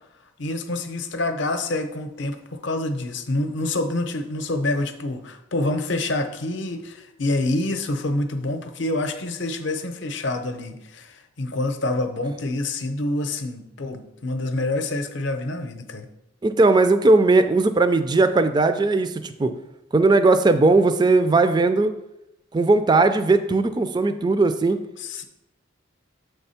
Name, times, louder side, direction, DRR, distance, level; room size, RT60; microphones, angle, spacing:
voice 1, 0.4-16.1 25.0-25.2, left 2 dB, 60° left, 7 dB, 0.6 m, -27 dB
voice 2, 16.4-19.5 19.9-21.9 22.5-24.8, right 3 dB, 20° right, 10 dB, 0.3 m, -18 dB
7.3 x 3.4 x 5.6 m, 0.88 s
head